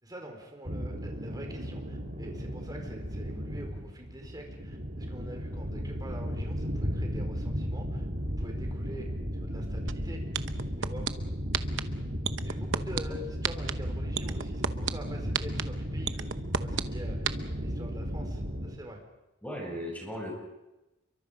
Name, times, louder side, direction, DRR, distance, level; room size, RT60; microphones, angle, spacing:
voice 1, 0.0-8.1 8.4-9.1 9.3-10.2 10.8-11.1 12.4-16.3 16.6-19.0, equal, 20° right, 2 dB, 4.7 m, -45 dB
Thunder ambience, 0.6-18.7, equal, 50° right, 3.8 m, -35 dB
statik pan, 9.9-10.0 10.3-11.1 11.5-11.8 12.2-13.0 13.4-13.7 14.2-14.9 15.3-15.6 16.1-16.8 17.3-17.4, right 7 dB, 70° right, 0.9 m, -28 dB
voice 2, 19.4-20.3, equal, 10° left, 0 dB, 7.3 m, -37 dB
28.5 x 23.5 x 5.2 m, 0.98 s
head